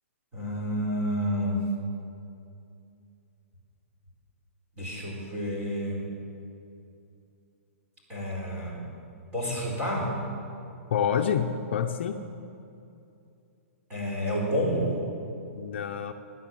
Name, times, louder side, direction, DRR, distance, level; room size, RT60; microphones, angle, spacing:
voice 1, 0.3-1.6 4.8-6.1 8.1-8.8 9.3-10.1 13.9-15.0, equal, 15° right, -4 dB, 4.4 m, -29 dB
voice 2, 10.9-12.2 15.5-16.1, left 8 dB, 50° left, 5 dB, 0.8 m, -27 dB
18.0 x 10.0 x 7.9 m, 2.6 s
hypercardioid pair, 175°, 8 cm